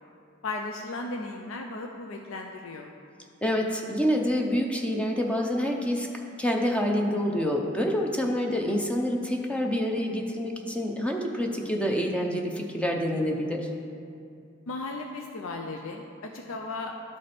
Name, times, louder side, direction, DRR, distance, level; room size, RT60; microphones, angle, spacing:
voice 1, 0.4-2.9 14.7-16.9, left 2 dB, 75° left, 2 dB, 0.5 m, -36 dB
voice 2, 3.4-6.1 6.4-13.7, equal, 5° left, 1 dB, 0.5 m, -27 dB
12.0 x 4.1 x 3.4 m, 2.5 s
head